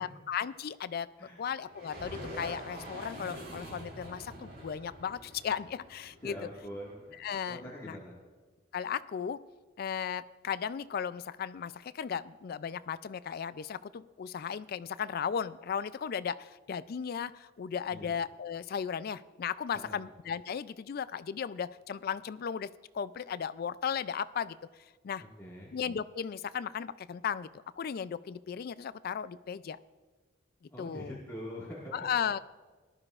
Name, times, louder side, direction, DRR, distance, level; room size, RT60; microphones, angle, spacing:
voice 1, 0.0-1.1 1.4-6.3 7.2-8.0 8.7-9.4 9.8-22.7 22.9-24.6 25.0-25.2 25.7-27.5 27.8-29.8 30.8-31.1 31.9-32.4, left 7 dB, 50° left, 16 dB, 0.3 m, -36 dB
sound 1, 1.7-7.3, equal, 60° right, 3.8 m, -45 dB
voice 2, 6.2-8.2 17.9-18.1 19.7-20.0 25.2-25.7 30.7-32.1, equal, 15° left, -7 dB, 1.7 m, -44 dB
18.5 x 12.0 x 2.4 m, 1.3 s
head